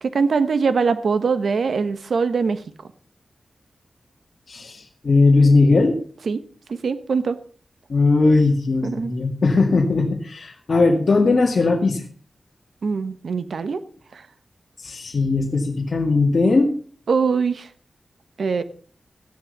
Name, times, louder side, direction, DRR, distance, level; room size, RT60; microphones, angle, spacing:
voice 1, 0.0-2.6 6.2-6.4 6.7-7.4 8.8-9.1 12.8-13.8 14.1-14.3 17.1-17.7 18.4-18.6, right 5 dB, 85° right, 11 dB, 1.2 m, -22 dB
voice 2, 4.5-6.0 7.9-12.0 14.8-16.7, left 3 dB, 65° left, 0 dB, 2.0 m, -18 dB
14.5 x 10.5 x 5.4 m, 0.43 s
wide cardioid pair, 75°, 0 cm